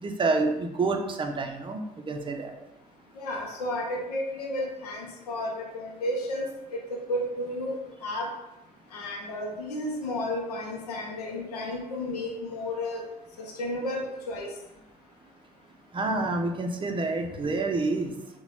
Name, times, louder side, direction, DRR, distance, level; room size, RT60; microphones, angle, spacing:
voice 1, 0.0-2.5 15.9-18.1, right 3 dB, 25° right, 4 dB, 0.5 m, -28 dB
voice 2, 3.2-6.8 7.1-7.8 8.0-8.3 8.9-13.0 13.4-14.5 17.2-17.5, left 1 dB, 90° left, 0 dB, 0.5 m, -32 dB
3.9 x 2.2 x 3.0 m, 0.93 s
hypercardioid pair, 55°, 20 cm